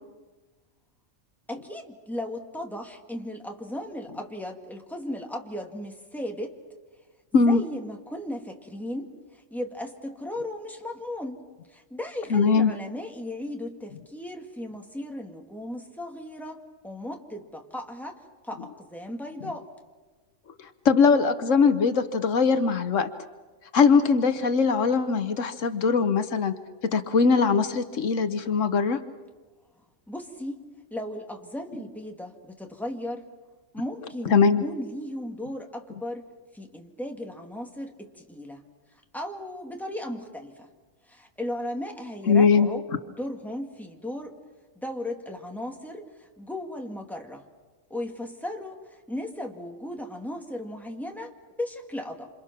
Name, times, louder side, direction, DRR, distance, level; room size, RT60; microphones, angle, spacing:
voice 1, 1.5-6.5 7.3-19.6 30.1-30.6 30.9-33.3 33.7-36.3 36.5-38.6 39.1-40.7 41.0-44.3 44.8-47.4 47.9-52.3, left 1 dB, ahead, 2 dB, 2.0 m, -36 dB
voice 2, 12.3-12.7 20.8-23.1 23.7-26.5 26.9-29.0 34.3-34.6 42.3-42.7, left 5 dB, 75° left, 10 dB, 1.3 m, -21 dB
27.5 x 27.0 x 6.0 m, 1.3 s
omnidirectional pair, 1.3 m